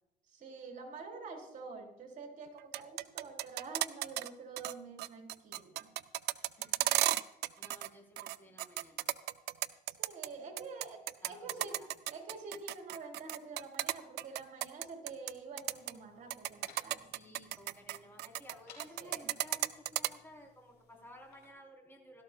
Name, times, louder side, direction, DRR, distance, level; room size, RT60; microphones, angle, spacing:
voice 1, 0.3-5.9 10.0-11.8 12.1-17.1 19.0-19.3, right 4 dB, 50° right, 2 dB, 4.4 m, -47 dB
sound 1, 2.6-4.3 4.6-4.7 5.0-7.9 8.2-10.3 10.6-15.3 15.6-15.9 16.3-18.5 18.8-20.1, right 15 dB, 80° right, 0.5 m, -34 dB
voice 2, 6.6-9.1 11.2-11.9 17.1-22.2, left 1 dB, 10° left, 0 dB, 4.1 m, -55 dB
sound 2, 15.6-21.5, left 5 dB, 70° left, 4.2 m, -62 dB
16.5 x 13.0 x 2.4 m, 0.86 s
cardioid pair, 110°, 17 cm